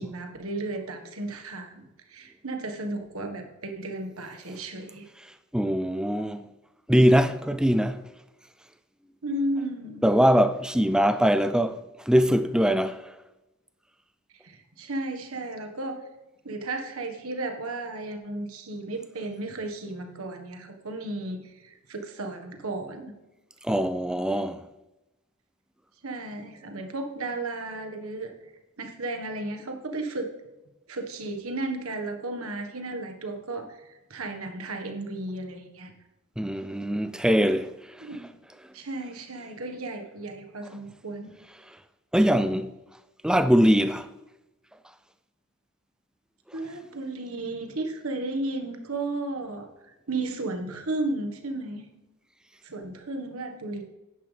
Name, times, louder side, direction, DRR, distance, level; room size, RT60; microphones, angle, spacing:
voice 1, 0.0-1.8 2.1-5.1 9.2-10.1 14.4-16.0 16.4-23.1 26.0-28.3 28.8-30.3 30.9-35.9 38.0-38.3 38.7-41.3 46.5-51.9 52.6-53.8, right 2 dB, 70° right, 1.5 m, -34 dB
voice 2, 5.5-6.4 6.9-8.0 10.0-11.8 12.1-13.0 23.6-24.6 36.4-37.7 42.1-42.7 43.2-44.1, equal, 5° right, 0.5 m, -22 dB
10.5 x 10.0 x 3.4 m
head